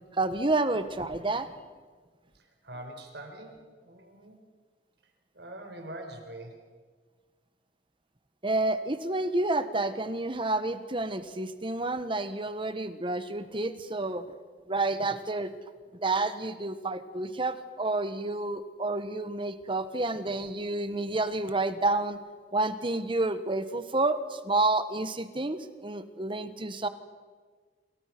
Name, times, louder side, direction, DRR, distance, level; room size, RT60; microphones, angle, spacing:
voice 1, 0.2-1.5 8.4-14.2 14.7-15.5 16.0-22.2 22.5-26.9, right 2 dB, 30° right, 11 dB, 1.5 m, -29 dB
voice 2, 2.3-4.4 5.3-6.6, right 1 dB, 75° right, 5 dB, 4.6 m, -44 dB
28.5 x 28.0 x 6.1 m, 1.5 s
head